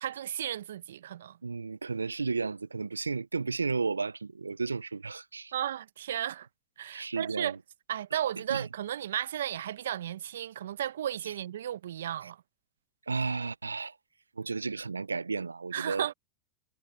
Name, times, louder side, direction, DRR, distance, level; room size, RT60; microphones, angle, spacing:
voice 1, 0.0-1.4 5.5-6.5 6.8-7.6 7.9-12.4 15.7-16.1, right 11 dB, 75° right, 1.0 m, -34 dB
voice 2, 1.4-5.5 6.9-7.6 8.4-8.7 11.2-11.3 12.2-12.3 13.1-14.0 14.4-16.1, right 4 dB, 90° right, 0.6 m, -33 dB
hypercardioid pair, 85°, 0 cm